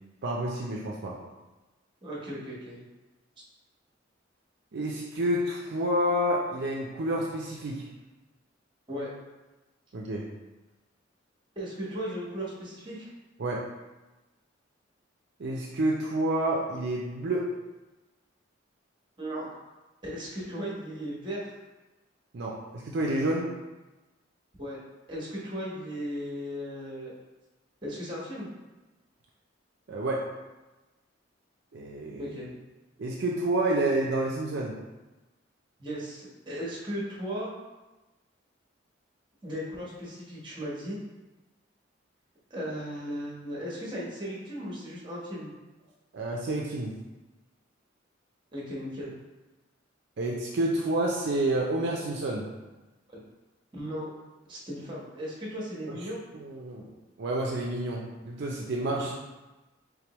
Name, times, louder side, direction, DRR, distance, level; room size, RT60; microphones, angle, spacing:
voice 1, 0.2-1.2 4.7-7.9 9.9-10.3 13.4-13.6 15.4-17.5 22.3-23.5 29.9-30.2 31.7-32.4 33.0-34.8 46.1-46.9 50.2-52.5 55.9-56.0 56.3-56.9 57.2-59.1, right 1 dB, 60° right, -2 dB, 0.5 m, -29 dB
voice 2, 2.0-2.8 8.9-9.1 11.6-13.1 19.2-19.5 20.0-21.5 24.6-24.8 25.1-27.1 27.8-28.5 32.2-32.5 35.8-37.5 39.4-41.0 42.5-45.5 48.5-49.2 53.1-53.2 53.7-54.1 54.5-56.2 58.9-59.1, equal, 25° right, -5 dB, 1.0 m, -36 dB
3.6 x 3.4 x 3.0 m, 1.1 s
head